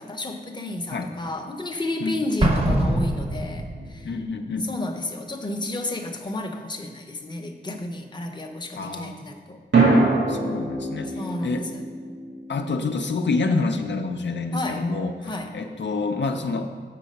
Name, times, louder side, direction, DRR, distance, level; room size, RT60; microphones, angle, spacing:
voice 1, 0.0-4.1 4.6-9.6 11.0-11.9 14.5-14.9 15.2-15.5, left 2 dB, 25° left, 3 dB, 0.7 m, -32 dB
Explosion, 2.4-4.0, right 1 dB, 35° right, 0.8 m, -23 dB
sound 1, 3.7-4.9 9.7-14.0, right 3 dB, 90° right, 2.0 m, -25 dB
voice 2, 4.0-4.7 8.8-9.1 10.3-11.1 11.4-11.6 12.5-15.1 15.5-16.7, left 3 dB, 80° left, 5 dB, 0.6 m, -27 dB
7.6 x 5.7 x 5.3 m, 1.6 s
wide cardioid pair, 110°, 18 cm